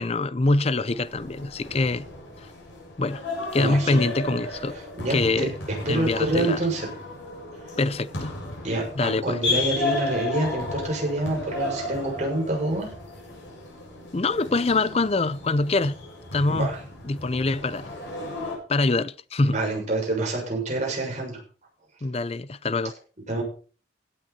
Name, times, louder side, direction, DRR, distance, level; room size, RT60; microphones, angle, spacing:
voice 1, 0.0-2.1 3.0-3.2 3.5-4.7 5.1-5.5 5.9-6.6 7.8-8.3 9.0-9.4 14.1-15.9 16.3-16.7 17.0-17.9 18.7-19.6 22.0-22.9, left 2 dB, 30° left, 0.5 m, -24 dB
sound 1, 0.9-18.6, left 2 dB, 85° left, 7.2 m, -34 dB
voice 2, 3.5-4.0 4.7-5.5 5.9-6.9 8.6-12.9 16.5-16.8 19.5-21.4 23.3-23.4, right 2 dB, 40° right, 6.9 m, -27 dB
16.5 x 9.3 x 4.3 m
head